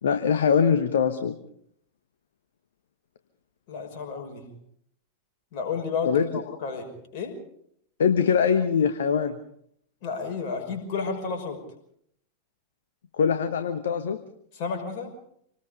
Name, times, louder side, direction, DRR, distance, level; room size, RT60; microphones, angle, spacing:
voice 1, 0.0-1.3 6.0-6.3 8.0-9.4 13.2-14.2, left 7 dB, 65° left, 9 dB, 1.1 m, -22 dB
voice 2, 3.7-4.5 5.5-6.9 7.1-7.3 10.0-11.6 14.5-15.1, left 5 dB, 45° left, 4 dB, 5.7 m, -31 dB
26.5 x 19.5 x 5.2 m, 0.69 s
figure-of-eight pair, 90°, 0 cm